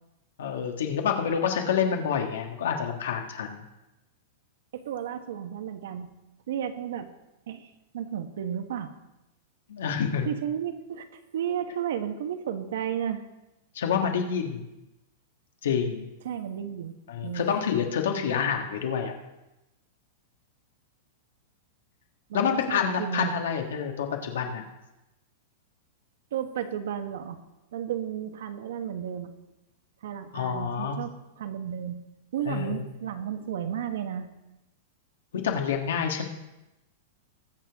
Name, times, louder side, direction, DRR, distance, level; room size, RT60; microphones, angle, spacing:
voice 1, 0.4-3.6 9.7-10.3 13.7-14.6 15.6-16.0 17.1-19.1 22.3-24.6 30.3-31.0 32.5-32.8 35.3-36.3, left 7 dB, 85° left, 3 dB, 1.6 m, -27 dB
voice 2, 4.7-6.1 6.5-7.1 7.5-8.9 10.2-13.2 16.2-16.9 17.2-17.6 22.3-23.3 26.3-27.4 27.7-29.3 30.0-32.0 32.3-34.3, right 9 dB, 65° right, 8 dB, 1.2 m, -33 dB
21.0 x 7.0 x 3.6 m, 0.98 s
supercardioid pair, 180°, 0 cm